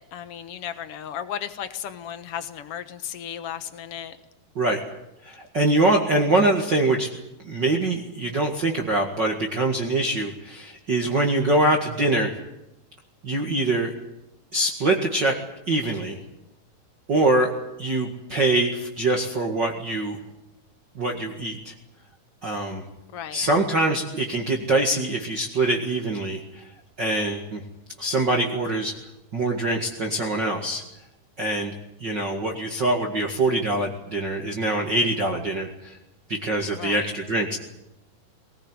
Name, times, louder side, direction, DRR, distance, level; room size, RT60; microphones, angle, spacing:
voice 1, 0.0-4.2 23.1-23.4 36.8-37.1, left 9 dB, 65° left, 11 dB, 1.4 m, -35 dB
voice 2, 5.2-7.1 7.4-12.3 13.2-13.9 14.5-15.3 15.7-16.2 17.1-17.5 17.8-20.2 21.0-21.7 22.4-22.8 23.3-26.7 27.0-27.6 28.0-28.9 29.3-30.8 31.4-31.8 32.0-36.0 36.3-37.6, right 2 dB, 40° right, 1 dB, 1.8 m, -24 dB
21.5 x 19.5 x 9.7 m, 0.90 s
omnidirectional pair, 4.5 m